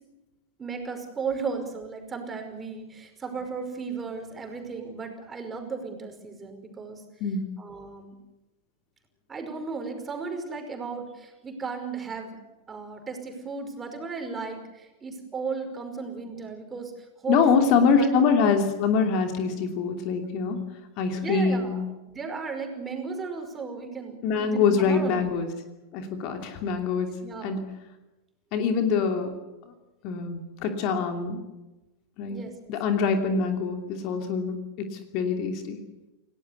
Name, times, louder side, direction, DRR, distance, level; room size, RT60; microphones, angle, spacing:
voice 1, 0.6-7.0 7.6-8.2 9.3-12.4 12.7-18.1 21.2-21.8 22.1-25.4 27.2-27.7 32.3-33.0, right 5 dB, 20° right, 5 dB, 5.4 m, -35 dB
voice 2, 7.2-7.5 17.3-20.6 21.0-21.8 24.2-25.5 25.9-27.1 27.4-27.7 28.5-29.3 30.0-31.4 32.2-32.4 32.7-35.8, left 5 dB, 40° left, 5 dB, 2.8 m, -24 dB
29.0 x 18.0 x 8.3 m, 1.1 s
figure-of-eight pair, 90°, 0 cm